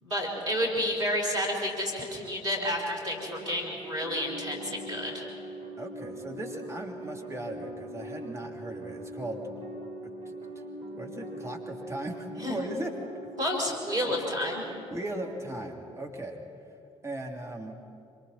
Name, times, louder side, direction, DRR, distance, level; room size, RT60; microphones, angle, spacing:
voice 1, 0.0-5.3 12.4-12.6 13.4-14.7, equal, 85° right, -5 dB, 4.0 m, -30 dB
sound 1, 3.1-15.4, right 1 dB, 35° right, 4.7 m, -42 dB
voice 2, 5.8-9.4 10.2-10.3 10.9-12.9 14.9-16.4 17.0-17.8, right 1 dB, 20° right, 0 dB, 3.1 m, -37 dB
26.0 x 25.0 x 4.3 m, 2.7 s
figure-of-eight pair, 40°, 15 cm